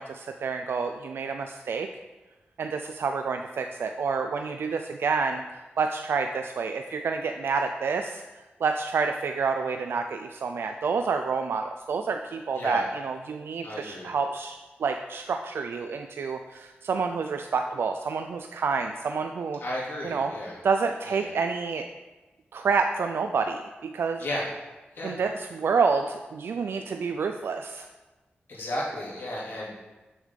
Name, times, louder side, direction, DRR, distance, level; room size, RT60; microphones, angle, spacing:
voice 1, 0.0-1.9 2.6-5.4 5.8-8.2 8.6-19.6 20.0-20.3 20.6-21.9 22.5-24.2 25.0-27.9, right 5 dB, 75° right, 5 dB, 0.3 m, -28 dB
voice 2, 13.6-14.1 19.6-20.6 21.1-21.3 24.2-24.4 24.9-25.2 28.5-29.7, left 1 dB, 70° left, -5 dB, 2.6 m, -33 dB
7.0 x 6.4 x 3.6 m, 1.2 s
cardioid pair, 70°, 4 cm